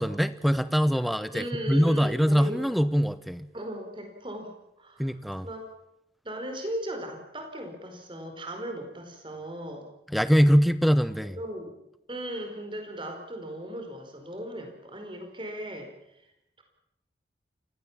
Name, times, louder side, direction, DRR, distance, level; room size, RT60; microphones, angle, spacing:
voice 1, 0.0-3.5 5.0-5.5 10.1-11.4, equal, ahead, 14 dB, 0.9 m, -23 dB
voice 2, 1.3-2.6 3.5-5.1 5.4-5.7 6.2-9.9 11.2-11.7 12.1-16.3, equal, 25° right, 5 dB, 4.8 m, -37 dB
29.0 x 17.0 x 7.4 m, 0.84 s
head